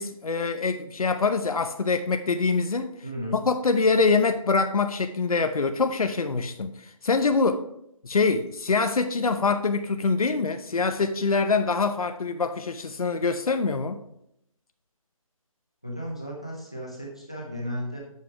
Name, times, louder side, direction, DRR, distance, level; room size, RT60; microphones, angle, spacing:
voice 1, 0.0-2.9 3.3-7.6 8.0-14.0, left 4 dB, 80° left, 8 dB, 0.7 m, -24 dB
voice 2, 3.0-3.4 15.8-18.0, equal, 10° left, -2 dB, 0.5 m, -34 dB
7.5 x 5.6 x 4.6 m, 0.76 s
hypercardioid pair, 180°, 18 cm